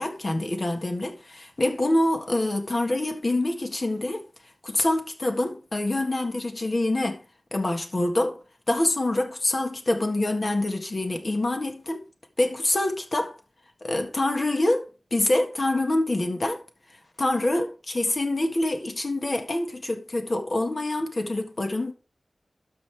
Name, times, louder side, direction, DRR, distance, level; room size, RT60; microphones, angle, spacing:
voice 1, 0.0-4.2 4.6-7.2 7.5-8.4 8.7-12.0 12.4-13.4 13.8-16.6 17.2-21.9, left 1 dB, 55° left, 1.6 m, -26 dB
12.5 x 5.3 x 3.5 m
wide cardioid pair, 50°, 0 cm